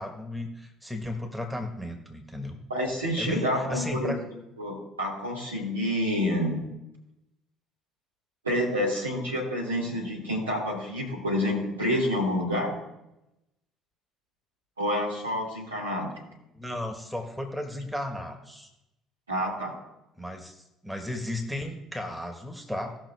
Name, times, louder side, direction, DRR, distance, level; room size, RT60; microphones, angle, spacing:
voice 1, 0.0-2.6 3.2-4.2 16.5-18.7 20.2-23.0, left 1 dB, 5° right, 4 dB, 1.7 m, -35 dB
voice 2, 2.7-4.2 4.6-6.6 8.4-12.7 14.8-16.1 19.3-19.7, equal, 80° right, -4 dB, 3.1 m, -28 dB
18.0 x 6.1 x 3.5 m, 0.89 s
figure-of-eight pair, 55°, 0 cm